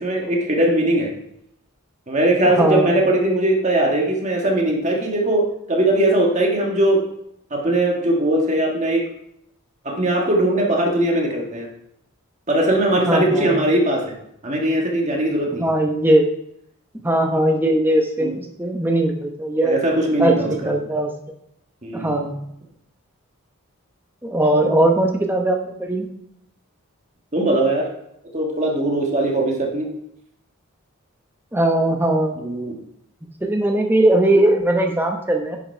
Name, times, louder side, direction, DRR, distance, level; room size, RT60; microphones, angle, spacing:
voice 1, 0.0-1.1 2.1-7.0 7.5-9.0 9.8-11.7 12.5-14.0 14.4-15.7 18.2-18.3 19.6-20.7 21.8-22.2 24.4-24.7 27.3-27.9 28.3-29.9 32.4-32.8, right 1 dB, 30° right, -1 dB, 1.5 m, -20 dB
voice 2, 2.6-2.9 13.1-13.6 15.6-16.3 17.0-19.8 20.2-21.1 21.9-22.4 24.2-26.1 31.5-32.4 33.4-35.6, right 1 dB, 10° right, 2 dB, 0.9 m, -19 dB
10.0 x 5.9 x 4.4 m, 0.76 s
head